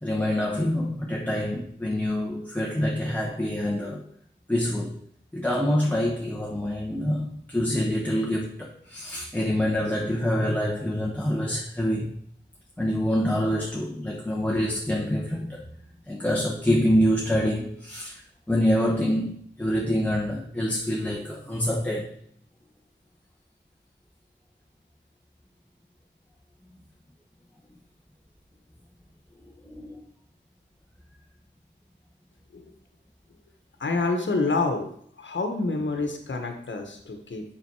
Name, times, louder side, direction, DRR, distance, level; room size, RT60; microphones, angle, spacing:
voice 1, 0.0-4.1 4.5-5.0 5.3-12.2 12.8-15.8 16.1-22.1 29.6-30.0, equal, 5° left, -1 dB, 1.0 m, -26 dB
voice 2, 33.8-34.9 35.2-37.4, left 3 dB, 70° left, 5 dB, 1.1 m, -27 dB
7.2 x 5.4 x 4.7 m, 0.64 s
wide cardioid pair, 80°, 20 cm